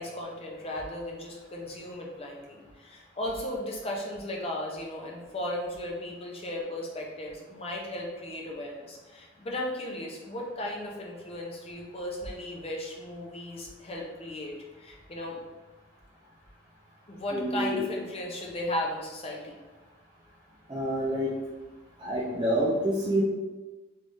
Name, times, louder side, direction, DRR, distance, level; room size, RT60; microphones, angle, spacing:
voice 1, 0.0-15.5 17.1-19.6, left 1 dB, 30° left, -1 dB, 0.6 m, -36 dB
voice 2, 17.3-17.8 20.7-21.3 22.0-23.2, right 1 dB, 25° right, -6 dB, 0.5 m, -27 dB
3.3 x 3.3 x 2.6 m, 1.2 s
head